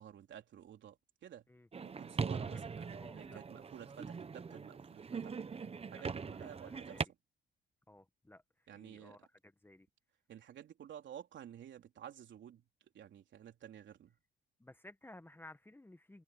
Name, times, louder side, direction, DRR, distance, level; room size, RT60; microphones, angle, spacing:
voice 1, 0.0-1.5 1.8-5.4 5.9-7.1 8.7-9.3 10.3-12.6 12.9-14.2, right 10 dB, 70° right, 3.6 m, -52 dB
sound 1, 1.7-7.0, right 5 dB, 30° right, 1.0 m, -41 dB
voice 2, 2.9-3.4 5.9-7.0 7.9-8.4 8.7-9.2 9.6-9.9 14.6-16.2, left 1 dB, 10° left, 1.4 m, -56 dB
cardioid pair, 90°, 20 cm